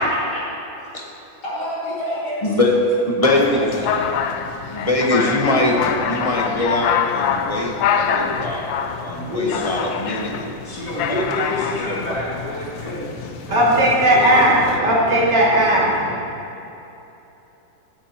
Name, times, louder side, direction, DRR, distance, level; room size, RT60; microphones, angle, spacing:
voice 1, 1.4-2.5 2.8-2.9 3.3-3.4 3.7-3.9 9.2-9.7 10.6-14.9, left 1 dB, 60° left, -9 dB, 3.7 m, -28 dB
voice 2, 2.4-2.8 3.2-3.7 4.7-10.3 11.1-11.4 11.7-11.8, left 2 dB, 20° left, -1 dB, 1.0 m, -22 dB
sound 1, 3.2-14.8, left 7 dB, 80° left, 1.4 m, -26 dB
voice 3, 13.5-16.2, right 1 dB, 60° right, -6 dB, 3.2 m, -16 dB
16.5 x 9.9 x 3.0 m, 2.9 s
omnidirectional pair, 2.1 m